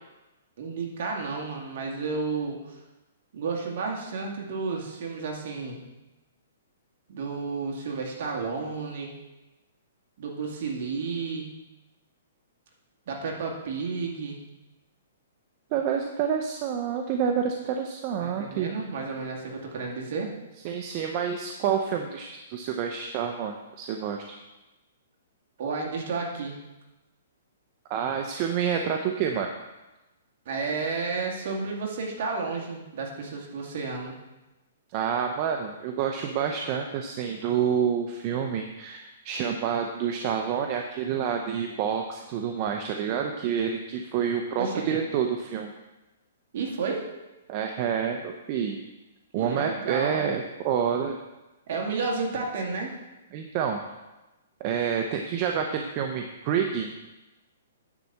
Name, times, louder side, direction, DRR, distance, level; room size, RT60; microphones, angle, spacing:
voice 1, 0.6-2.8 3.3-5.8 7.1-9.1 10.2-11.5 13.1-14.4 18.2-20.3 25.6-26.6 30.5-34.2 44.6-45.0 46.5-47.1 49.3-50.3 51.7-53.0, right 4 dB, 50° right, -1 dB, 2.2 m, -32 dB
voice 2, 15.7-18.7 20.6-24.2 27.9-29.5 34.9-45.7 47.5-48.8 49.3-51.2 53.3-53.8 54.6-56.9, right 7 dB, 35° right, 3 dB, 0.7 m, -28 dB
9.8 x 4.2 x 7.3 m, 1.0 s
hypercardioid pair, 155°, 0 cm